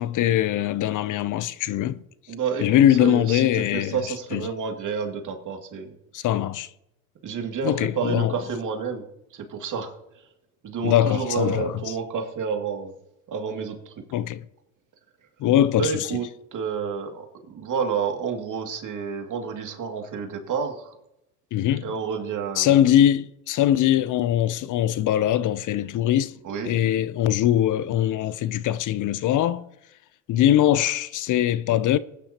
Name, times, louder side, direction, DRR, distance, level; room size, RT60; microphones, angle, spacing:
voice 1, 0.0-2.0 2.6-4.0 4.3-4.4 6.1-6.7 7.6-8.3 10.8-11.7 14.1-14.4 15.4-15.9 21.5-21.8 22.6-26.4 26.7-29.6 30.3-32.0, left 11 dB, 45° left, 0.6 m, -21 dB
voice 2, 2.3-5.9 7.2-9.0 9.3-9.9 10.6-12.9 13.3-13.9 15.7-20.9 21.8-22.8 26.4-26.7, right 6 dB, 45° right, 2.5 m, -30 dB
20.0 x 10.0 x 2.9 m
supercardioid pair, 85°, 42 cm